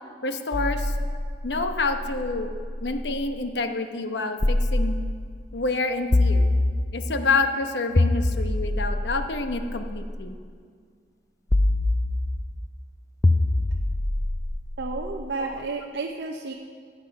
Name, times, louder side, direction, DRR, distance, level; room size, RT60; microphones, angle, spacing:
voice 1, 0.2-0.9 1.4-2.5 2.8-4.9 5.5-6.5 6.9-10.3 15.4-15.7, left 3 dB, 80° left, 7 dB, 0.9 m, -28 dB
sound 1, 0.5-3.3 4.4-5.5 6.1-7.2 8.0-10.2 11.5-12.6 13.2-15.4, left 2 dB, 20° left, 0.4 m, -25 dB
voice 2, 14.8-16.5, right 3 dB, 70° right, 2 dB, 0.6 m, -31 dB
15.5 x 8.8 x 5.3 m, 2.1 s
head